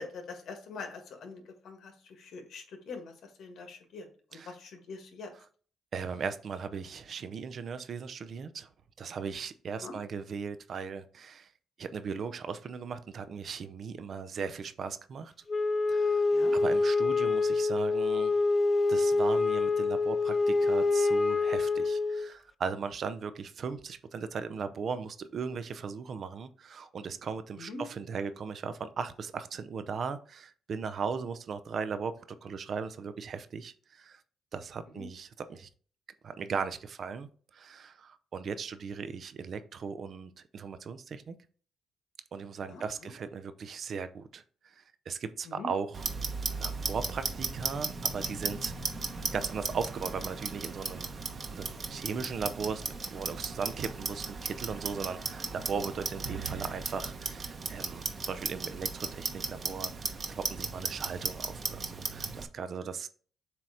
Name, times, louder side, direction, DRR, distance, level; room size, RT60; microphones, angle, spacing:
voice 1, 0.0-5.3 9.8-10.0 16.3-16.5 27.6-27.8 34.9-35.1 42.7-43.1 45.4-45.7, left 3 dB, 70° left, 1.6 m, -44 dB
voice 2, 5.9-8.7 9.0-11.5 11.8-15.3 15.9-16.2 16.5-18.4 18.9-32.1 32.4-34.2 34.5-35.7 36.2-41.4 42.3-46.0 46.6-48.7 49.3-51.1 51.5-63.1, right 5 dB, 55° right, 0.6 m, -38 dB
Wind instrument woodwind instrument, 15.5-22.3, left 3 dB, 30° left, 0.4 m, -26 dB
Clock, 45.9-62.4, right 4 dB, 40° right, 1.0 m, -36 dB
7.6 x 2.9 x 4.9 m
cardioid pair, 90°, 0 cm